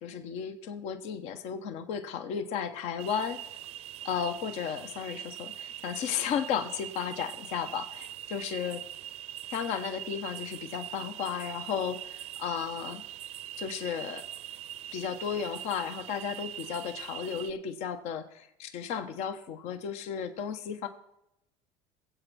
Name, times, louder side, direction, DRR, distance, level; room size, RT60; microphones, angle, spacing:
voice 1, 0.0-3.5 4.0-8.8 9.5-13.0 13.6-14.3 14.9-20.9, left 7 dB, 65° left, 9 dB, 1.1 m, -34 dB
sound 1, 3.0-17.5, right 12 dB, 60° right, 0.6 m, -42 dB
22.0 x 8.0 x 4.2 m, 0.84 s
supercardioid pair, 100°, 12 cm